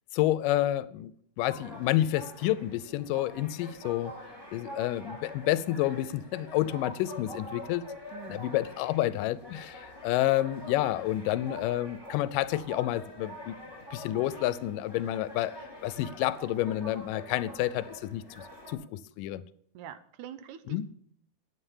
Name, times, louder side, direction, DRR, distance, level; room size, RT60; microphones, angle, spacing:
voice 1, 0.1-1.1 1.4-4.2 4.5-7.9 8.3-13.6 13.9-18.2 18.7-19.4 20.7-20.9, left 14 dB, 90° left, 2.2 m, -29 dB
sound 1, 1.5-18.7, left 1 dB, 10° left, 2.6 m, -45 dB
voice 2, 8.1-8.7 19.8-20.9, right 10 dB, 80° right, 2.1 m, -45 dB
10.0 x 9.2 x 5.5 m
omnidirectional pair, 3.7 m